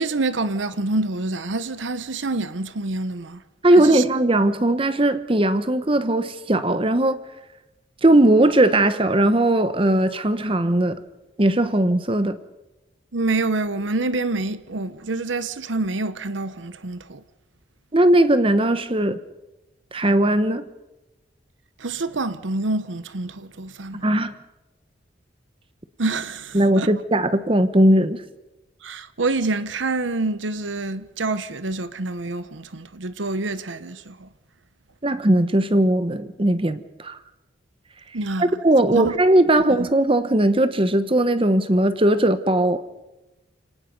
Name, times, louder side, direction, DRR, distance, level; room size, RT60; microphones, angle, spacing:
voice 1, 0.0-3.4 3.8-4.0 13.1-17.2 21.8-24.1 26.0-26.9 28.8-34.3 38.1-38.6 38.9-39.2, right 2 dB, 80° right, 1.0 m, -27 dB
voice 2, 3.6-7.2 8.0-11.0 11.4-12.4 17.9-19.2 19.9-20.6 24.0-24.3 26.5-28.2 35.0-37.2 38.4-42.8, right 1 dB, 30° right, 1.0 m, -18 dB
29.0 x 18.5 x 5.4 m
head